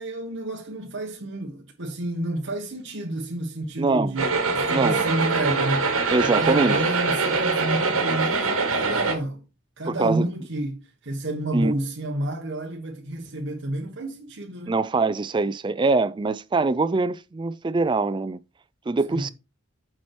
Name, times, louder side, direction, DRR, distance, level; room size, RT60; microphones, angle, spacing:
voice 1, 0.0-9.5 9.8-14.8 19.1-19.3, right 1 dB, 60° right, 1.3 m, -30 dB
voice 2, 3.8-4.1 4.7-5.0 6.1-6.8 9.9-10.2 11.5-11.7 14.7-18.4 18.9-19.3, right 3 dB, 20° right, 0.3 m, -23 dB
sound 1, 4.2-9.1, right 4 dB, 85° right, 1.8 m, -23 dB
7.4 x 4.5 x 4.6 m
head